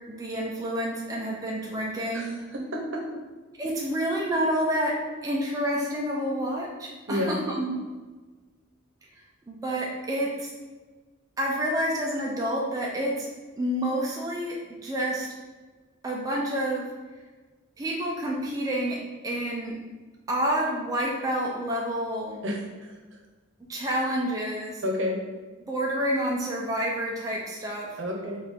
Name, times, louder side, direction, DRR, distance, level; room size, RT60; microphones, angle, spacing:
voice 1, 0.1-2.4 3.6-7.7 9.1-10.5 11.4-13.3 13.6-15.3 16.0-16.9 17.8-19.8 20.3-22.4 23.7-24.8 25.7-28.0, equal, 15° right, -3 dB, 0.4 m, -29 dB
voice 2, 2.5-3.0 7.1-7.4 22.4-23.0 24.8-25.2 28.0-28.4, left 1 dB, 65° right, 0 dB, 0.8 m, -30 dB
4.4 x 2.5 x 3.5 m, 1.3 s
head